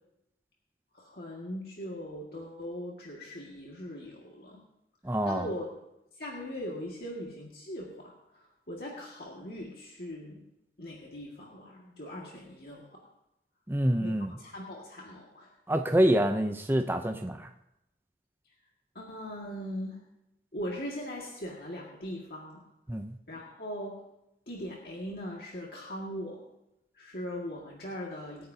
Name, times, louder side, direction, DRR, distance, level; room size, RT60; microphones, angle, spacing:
voice 1, 0.9-4.6 5.2-5.7 6.1-10.4 10.8-13.0 14.0-15.5 18.9-20.0 20.5-22.6 23.3-24.0 24.5-26.4 26.9-28.5, equal, 60° left, -3 dB, 1.9 m, -40 dB
voice 2, 5.0-5.4 13.7-14.3 15.7-17.5 22.9-23.1, right 1 dB, 10° right, 5 dB, 0.5 m, -26 dB
25.0 x 9.6 x 2.8 m, 0.85 s
head